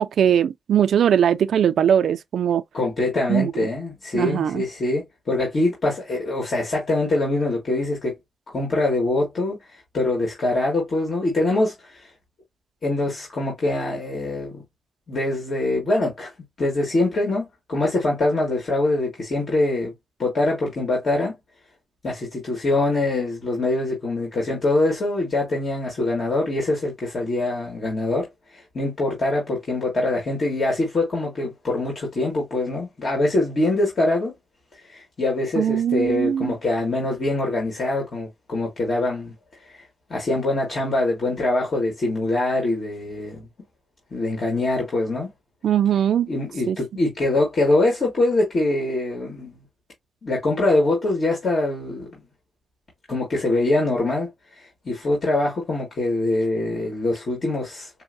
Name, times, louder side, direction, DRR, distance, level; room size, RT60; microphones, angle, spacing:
voice 1, 0.0-2.6 3.3-3.7 4.1-4.6 35.6-36.5 45.6-46.3 46.7-46.8, right 9 dB, 80° right, 0.4 m, -20 dB
voice 2, 2.7-8.1 8.5-12.1 12.8-14.6 15.1-16.3 16.6-19.9 20.2-21.3 22.0-34.3 34.9-39.3 39.7-39.8 40.1-43.5 44.1-45.3 46.3-49.6 50.2-52.1 53.1-57.9, left 2 dB, 50° left, 1.8 m, -24 dB
5.3 x 2.1 x 2.6 m
cardioid pair, 110°, 0 cm